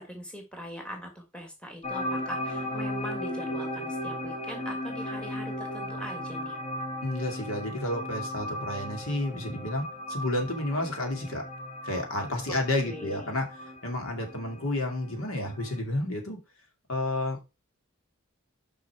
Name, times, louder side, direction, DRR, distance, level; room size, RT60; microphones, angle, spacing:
voice 1, 0.0-6.6 12.5-12.6 12.8-13.4, equal, 5° left, 2 dB, 1.7 m, -41 dB
sound 1, 1.8-15.8, left 1 dB, 25° left, 1.2 m, -36 dB
voice 2, 7.0-11.5 11.8-13.5 13.8-16.4 16.9-17.4, left 1 dB, 75° left, 3 dB, 2.2 m, -31 dB
6.4 x 5.5 x 4.6 m, 0.26 s
head